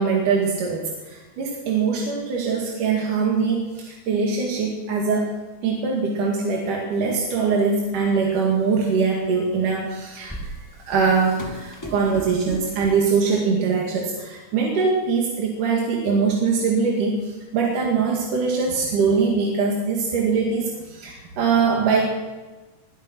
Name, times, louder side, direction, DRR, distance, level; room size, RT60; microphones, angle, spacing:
voice 1, 0.0-5.3 5.6-10.4 10.9-22.1, right 5 dB, 85° right, -2 dB, 3.6 m, -22 dB
sound 1, 6.9-7.0 7.5-8.0 8.7-8.8 9.8-13.1, equal, 10° left, 1.1 m, -37 dB
22.0 x 12.5 x 4.5 m, 1.2 s
omnidirectional pair, 3.6 m